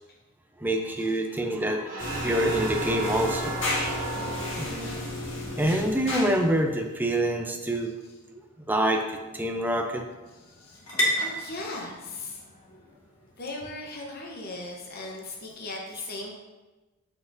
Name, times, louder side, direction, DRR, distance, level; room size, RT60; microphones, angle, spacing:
voice 1, 0.6-3.6 4.6-5.0 5.6-7.9 8.3-8.4 8.7-10.0, right 1 dB, 10° right, 3 dB, 0.6 m, -26 dB
sound 1, 1.9-6.6, right 3 dB, 45° right, 1.1 m, -36 dB
sound 2, 2.0-6.6, left 1 dB, 65° left, 1.9 m, -33 dB
voice 2, 4.1-4.7 7.8-7.9 10.3-10.8 11.2-12.4 13.4-16.3, left 2 dB, 50° left, -1 dB, 0.9 m, -38 dB
sound 3, 7.9-15.2, equal, 90° left, 1.9 m, -36 dB
7.5 x 6.0 x 2.6 m, 1.2 s
head